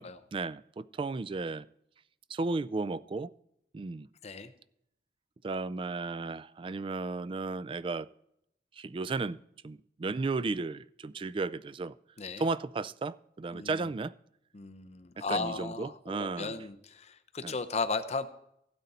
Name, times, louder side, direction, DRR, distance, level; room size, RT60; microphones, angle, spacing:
voice 1, 0.3-1.7 2.3-3.3 3.7-4.1 5.4-8.1 8.8-9.4 9.6-11.9 12.4-14.1 15.2-16.6 17.4-17.5, right 3 dB, 30° right, 0.3 m, -34 dB
voice 2, 13.5-13.8 14.5-18.3, left 4 dB, 40° left, 0.7 m, -35 dB
16.0 x 7.9 x 4.2 m
head